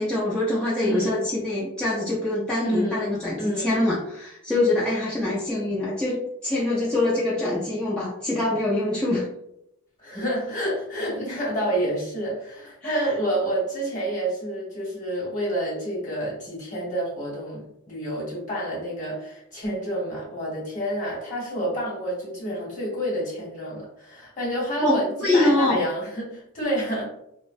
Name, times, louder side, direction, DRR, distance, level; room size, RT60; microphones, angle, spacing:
voice 1, 0.0-9.3 12.8-13.1 24.8-25.8, left 2 dB, 5° left, -9 dB, 0.4 m, -24 dB
voice 2, 0.8-1.3 2.6-3.8 10.0-27.0, right 1 dB, 35° left, -5 dB, 1.0 m, -29 dB
2.6 x 2.0 x 2.4 m, 0.80 s
head